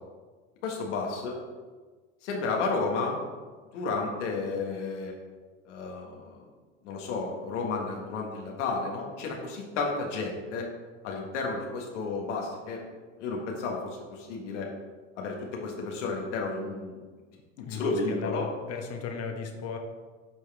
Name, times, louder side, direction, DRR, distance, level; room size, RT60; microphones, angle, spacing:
voice 1, 0.6-1.4 2.2-3.2 3.7-5.1 5.6-6.4 6.8-10.7 11.0-12.8 13.2-14.7 15.2-17.0 17.6-18.5, left 3 dB, 85° left, 0 dB, 1.6 m, -32 dB
voice 2, 17.6-19.8, left 5 dB, 45° left, 4 dB, 1.3 m, -35 dB
9.0 x 4.8 x 3.4 m, 1.4 s
hypercardioid pair, 95°, 35 cm